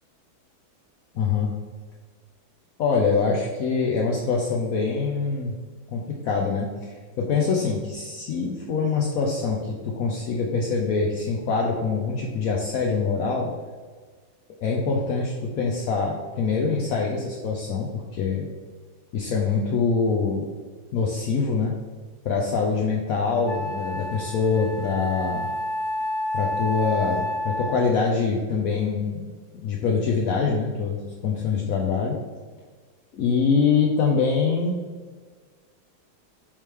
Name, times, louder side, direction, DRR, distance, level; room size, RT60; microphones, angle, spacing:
voice 1, 1.1-1.5 2.8-5.6 5.9-13.5 14.6-18.5 19.1-20.5 20.9-21.7 22.2-25.5 26.3-29.2 29.6-32.2 33.1-34.8, left 5 dB, 70° left, 0 dB, 0.8 m, -24 dB
Wind instrument woodwind instrument, 22.8-22.9 23.4-28.1, left 1 dB, 55° left, 1.5 m, -30 dB
8.5 x 3.3 x 3.5 m, 1.5 s
omnidirectional pair, 2.2 m